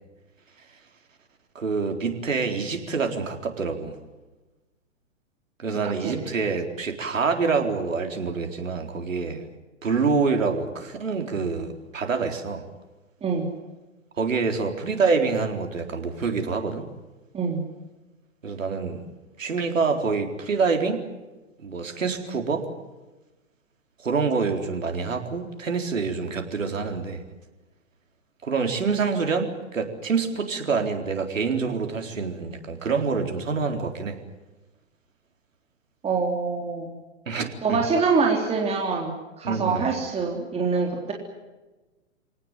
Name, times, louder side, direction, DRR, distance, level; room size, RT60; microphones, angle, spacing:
voice 1, 1.5-3.9 5.6-9.4 9.8-12.6 14.2-16.8 18.4-19.0 19.4-21.0 21.6-22.7 24.0-27.2 28.4-34.2 37.3-37.8 39.4-39.9, right 4 dB, 90° right, 4 dB, 4.2 m, -26 dB
voice 2, 36.0-36.9 37.6-41.1, right 4 dB, 15° right, 0 dB, 3.7 m, -25 dB
27.5 x 19.0 x 9.4 m, 1.1 s
hypercardioid pair, 130°, 38 cm